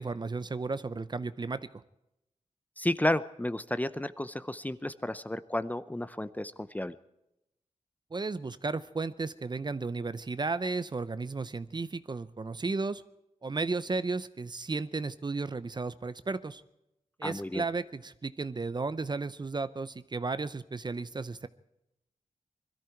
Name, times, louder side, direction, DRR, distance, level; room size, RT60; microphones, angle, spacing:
voice 1, 0.0-1.8 8.1-13.0 13.4-16.6 17.2-21.5, right 3 dB, 35° right, 14 dB, 0.6 m, -34 dB
voice 2, 2.8-6.9 17.2-17.6, left 1 dB, 10° left, 13 dB, 0.6 m, -32 dB
21.5 x 13.5 x 4.6 m, 0.86 s
wide cardioid pair, 85°, 13 cm